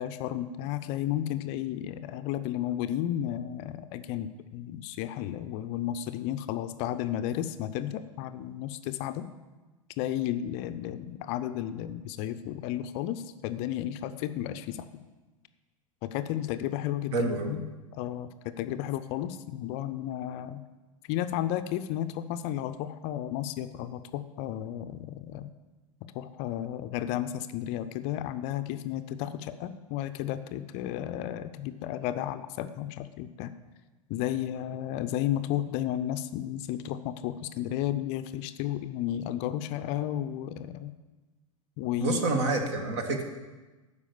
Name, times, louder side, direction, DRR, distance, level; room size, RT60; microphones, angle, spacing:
voice 1, 0.0-9.3 10.0-14.9 16.0-17.6 18.0-20.6 21.1-25.5 26.1-33.5 34.1-40.9 41.8-42.2, left 12 dB, 40° left, 11 dB, 0.5 m, -33 dB
voice 2, 17.1-17.5 42.0-43.2, right 3 dB, 55° right, 5 dB, 1.5 m, -28 dB
12.0 x 4.9 x 6.8 m, 1.2 s
figure-of-eight pair, 90°, 17 cm